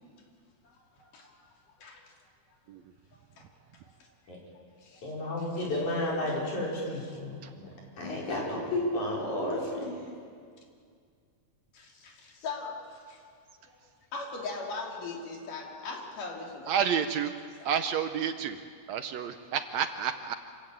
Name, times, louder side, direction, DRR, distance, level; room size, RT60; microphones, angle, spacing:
voice 1, 1.0-1.4 1.8-2.0 3.1-3.4 4.8-5.1 5.9-6.5 11.7-13.2 13.6-13.8 14.1-17.0 17.6-17.7, left 4 dB, 85° left, 0 dB, 4.4 m, -40 dB
voice 2, 5.0-7.7 8.0-10.0, left 1 dB, 65° left, -3 dB, 6.3 m, -32 dB
voice 3, 16.7-17.4 17.7-18.6 18.9-20.3, right 8 dB, 70° right, 8 dB, 1.8 m, -30 dB
27.0 x 15.0 x 8.9 m, 2.2 s
omnidirectional pair, 3.6 m